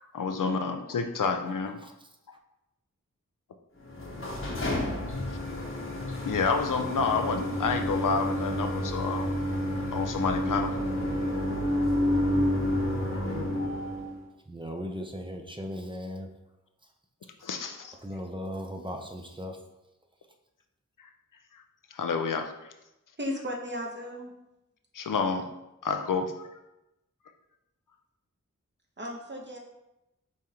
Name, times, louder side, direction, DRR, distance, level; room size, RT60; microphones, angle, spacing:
voice 1, 0.1-1.8 6.2-9.4 9.9-10.7 13.1-13.3 17.4-17.9 21.9-22.5 24.9-25.4 25.8-26.5, left 5 dB, 80° left, 6 dB, 0.5 m, -29 dB
sound 1, 3.8-14.2, left 1 dB, 40° left, 1.0 m, -30 dB
voice 2, 14.5-16.3 18.0-19.6, equal, 15° right, 3 dB, 0.6 m, -37 dB
voice 3, 23.2-24.3 29.0-29.6, equal, 35° right, 0 dB, 0.9 m, -35 dB
5.2 x 3.6 x 2.9 m, 0.92 s
wide cardioid pair, 55°, 31 cm